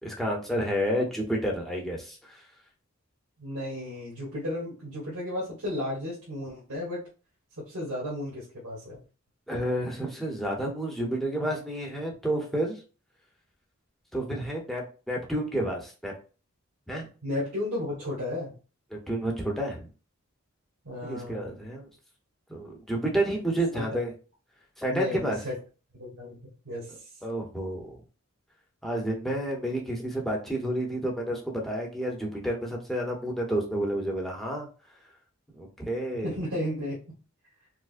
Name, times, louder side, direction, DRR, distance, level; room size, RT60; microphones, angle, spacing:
voice 1, 0.0-2.4 9.5-12.8 14.1-16.1 16.9-17.1 18.9-19.9 21.0-21.9 22.5-24.1 24.8-25.4 27.2-28.0 28.8-34.7 35.6-36.3, right 1 dB, ahead, -2 dB, 0.8 m, -30 dB
voice 2, 3.4-7.0 7.7-9.0 17.2-18.5 20.8-21.6 23.7-23.8 24.9-25.5 25.9-27.1 36.2-37.0, left 1 dB, 85° right, -6 dB, 1.5 m, -34 dB
4.7 x 2.1 x 2.5 m, 0.35 s
head